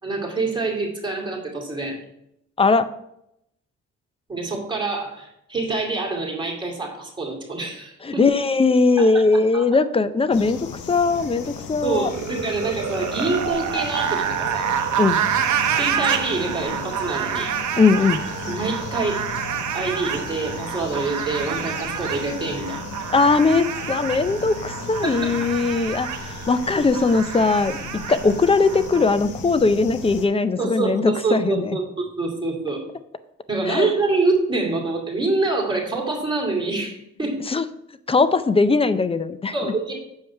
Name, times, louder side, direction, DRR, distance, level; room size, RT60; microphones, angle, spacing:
voice 1, 0.0-2.0 4.3-8.3 9.0-9.1 9.5-9.7 11.8-14.7 15.7-17.5 18.5-19.3 19.7-22.8 25.0-25.5 30.6-32.8 33.5-37.4 39.5-40.0, right 3 dB, 15° right, -2 dB, 2.6 m, -26 dB
voice 2, 2.6-2.9 8.0-12.1 15.0-15.2 17.8-18.2 23.1-27.8 28.1-31.8 33.7-33.9 37.5-37.7 38.1-39.5, left 3 dB, 20° left, 13 dB, 0.5 m, -20 dB
sound 1, 10.3-30.3, left 5 dB, 75° left, 0.9 m, -36 dB
sound 2, 12.0-29.0, right 9 dB, 70° right, 0.8 m, -28 dB
7.3 x 5.2 x 4.4 m, 0.78 s
cardioid pair, 90°, 30 cm